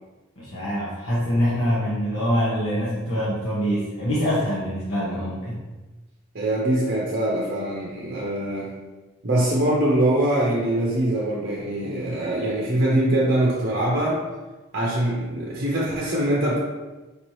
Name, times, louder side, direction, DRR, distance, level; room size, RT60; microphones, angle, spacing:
voice 1, 0.4-5.6, equal, 85° left, -8 dB, 1.0 m, -24 dB
voice 2, 6.3-8.7 9.2-14.2 14.7-16.6, right 1 dB, 50° right, -4 dB, 0.7 m, -23 dB
5.1 x 2.8 x 3.1 m, 1.2 s
head